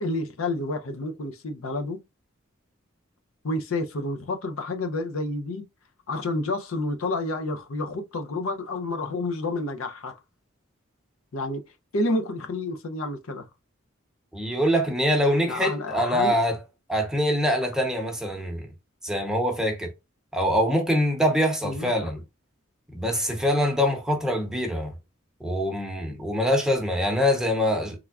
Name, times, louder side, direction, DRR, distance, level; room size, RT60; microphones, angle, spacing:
voice 1, 0.0-2.0 3.4-5.6 6.1-10.2 11.3-11.6 11.9-13.5 15.4-16.4 21.6-22.1, left 2 dB, 80° left, 0.6 m, -29 dB
voice 2, 14.3-16.6 16.9-18.7 19.0-19.9 20.3-22.2 22.9-24.9 25.4-28.0, equal, 5° right, 0.8 m, -24 dB
3.5 x 3.4 x 2.3 m
head